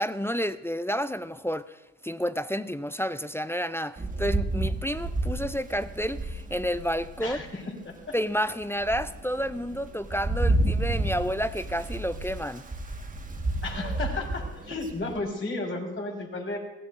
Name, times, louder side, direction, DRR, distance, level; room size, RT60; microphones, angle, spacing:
voice 1, 0.0-7.4 8.1-12.6, equal, 5° left, 13 dB, 0.5 m, -30 dB
Rain, 4.0-7.5 8.0-8.1 8.6-15.2, right 2 dB, 20° right, 1.7 m, -31 dB
voice 2, 7.2-8.1 13.6-16.6, left 2 dB, 30° left, 0 dB, 4.7 m, -33 dB
22.0 x 16.5 x 2.7 m, 0.99 s
hypercardioid pair, 60°, 41 cm